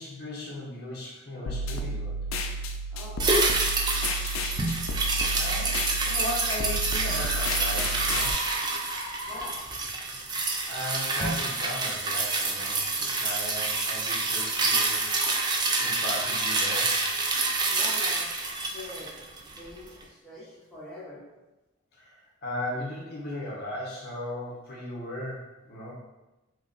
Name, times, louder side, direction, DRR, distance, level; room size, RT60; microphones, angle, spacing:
voice 1, 0.0-2.2 5.3-8.3 10.2-12.8 13.2-15.0 15.3-15.5 15.8-17.0 21.9-26.0, left 1 dB, 50° left, -5 dB, 0.7 m, -37 dB
sound 1, 1.5-8.3, right 1 dB, 85° left, 0.4 m, -32 dB
voice 2, 2.9-3.6 9.2-9.6 17.7-18.3 18.7-19.1 19.4-21.2, left 1 dB, 5° left, -10 dB, 1.1 m, -43 dB
Ice Cream Ball Slush, 3.2-19.7 20.0-20.1, right 3 dB, 20° right, 0.3 m, -28 dB
sound 2, 6.0-9.9, equal, 90° right, 1.3 m, -39 dB
3.1 x 2.2 x 3.8 m, 1.0 s
head